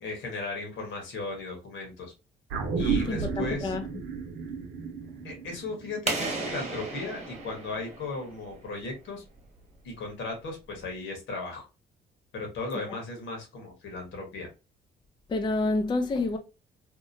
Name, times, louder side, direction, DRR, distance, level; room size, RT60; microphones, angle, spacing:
voice 1, 0.0-2.1 2.8-3.7 5.2-9.2 9.8-11.7 12.3-14.5, left 3 dB, 80° left, 1.3 m, -36 dB
sound 1, 2.5-7.1 7.4-7.5, right 5 dB, 80° right, 0.7 m, -33 dB
voice 2, 3.0-3.9 15.3-16.4, left 2 dB, 25° left, 0.4 m, -28 dB
sound 2, 6.1-8.7, right 3 dB, 35° right, 0.9 m, -34 dB
2.8 x 2.2 x 2.6 m
cardioid pair, 90°, 20 cm